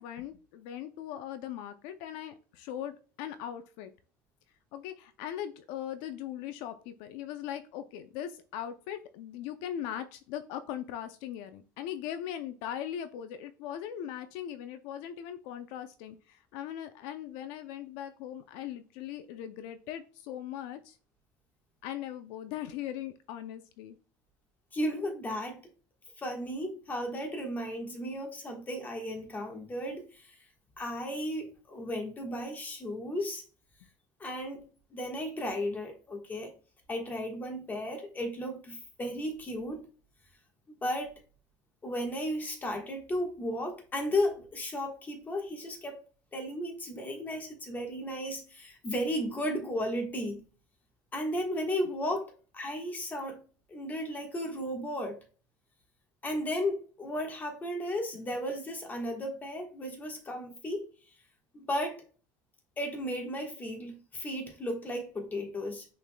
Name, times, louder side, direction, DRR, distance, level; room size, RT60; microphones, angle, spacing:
voice 1, 0.0-3.9 4.7-21.0 21.8-24.0, left 10 dB, 75° left, 0.5 m, -39 dB
voice 2, 24.7-25.6 26.2-30.3 30.8-33.4 34.2-34.6 34.9-36.5 36.9-39.8 40.8-41.1 41.8-46.0 46.3-50.4 51.1-53.4 53.7-55.2 56.2-60.9 61.5-62.0 62.8-65.9, left 1 dB, 20° left, 1.3 m, -34 dB
5.9 x 3.9 x 2.2 m
cardioid pair, 135°, 9 cm